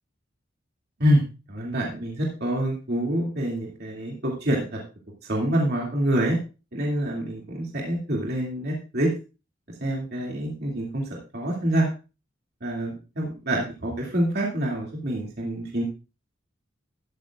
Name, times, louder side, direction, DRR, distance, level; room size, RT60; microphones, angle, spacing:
voice 1, 1.5-4.8 5.2-6.4 6.7-9.1 9.8-11.1 11.3-11.9 12.6-15.8, right 1 dB, 55° right, -2 dB, 2.5 m, -26 dB
13.5 x 12.5 x 2.4 m, 0.32 s
head